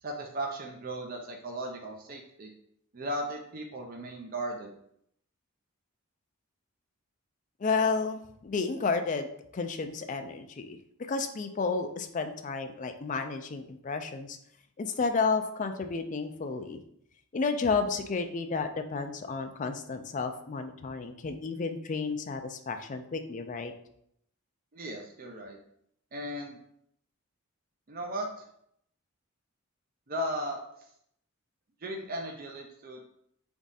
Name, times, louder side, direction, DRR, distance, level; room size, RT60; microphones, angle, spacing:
voice 1, 0.0-2.5 2.9-4.7 24.7-25.6 26.1-26.6 27.9-28.4 30.1-30.6 31.8-33.0, right 1 dB, 40° right, 2 dB, 0.5 m, -36 dB
voice 2, 7.6-9.3 9.5-10.8 11.1-14.4 14.8-16.8 17.3-23.7, left 4 dB, 35° left, 7 dB, 0.4 m, -31 dB
3.6 x 3.5 x 4.0 m, 0.72 s
head